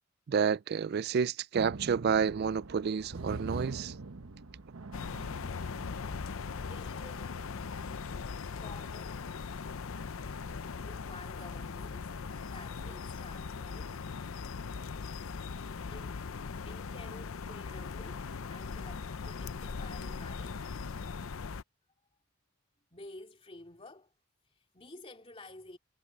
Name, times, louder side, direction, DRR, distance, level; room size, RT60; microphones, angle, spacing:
voice 1, 0.3-3.9, right 6 dB, 50° right, 0.3 m, -30 dB
sound 1, 1.5-6.9 7.9-8.0 8.3-8.4, right 3 dB, 90° right, 1.0 m, -43 dB
sound 2, 4.9-21.6, left 5 dB, 80° left, 0.6 m, -40 dB
voice 2, 6.6-7.5 8.6-9.5 10.8-12.2 12.5-14.0 15.9-16.3 16.6-20.6 22.9-24.1 24.5-25.8, left 2 dB, 30° left, 3.0 m, -51 dB
head